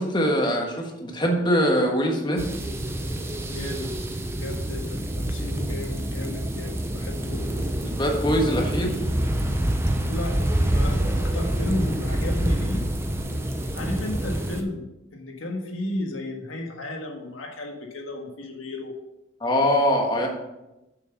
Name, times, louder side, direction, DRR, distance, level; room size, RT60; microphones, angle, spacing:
voice 1, 0.0-2.4 7.9-9.0 19.4-20.3, equal, 25° left, 1 dB, 1.4 m, -22 dB
sound 1, 2.4-14.6, right 1 dB, 10° right, 0.7 m, -27 dB
voice 2, 3.5-3.9 4.3-7.4 10.0-12.8 13.7-14.8 15.1-18.9, left 1 dB, 85° left, 2 dB, 1.6 m, -33 dB
7.3 x 6.4 x 5.8 m, 0.96 s
head